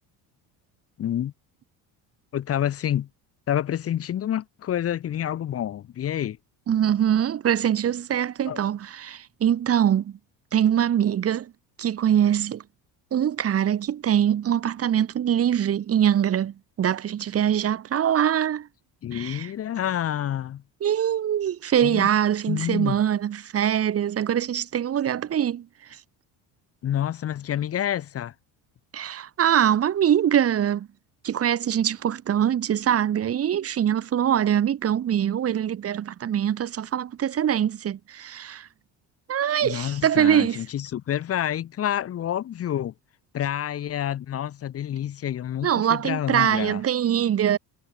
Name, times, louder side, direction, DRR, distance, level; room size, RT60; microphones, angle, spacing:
voice 1, 1.0-1.3 2.3-3.1 3.5-6.4 8.5-8.6 19.0-20.6 21.8-22.1 22.5-23.0 26.8-28.3 39.6-42.9 43.3-46.8, left 10 dB, 40° left, 1.4 m, -28 dB
voice 2, 6.7-10.2 10.5-11.5 11.8-12.6 13.1-18.7 19.1-19.5 20.8-26.0 28.9-30.9 31.2-38.7 39.3-40.6 45.6-47.6, right 10 dB, 40° right, 2.6 m, -23 dB
cardioid pair, 145°, 38 cm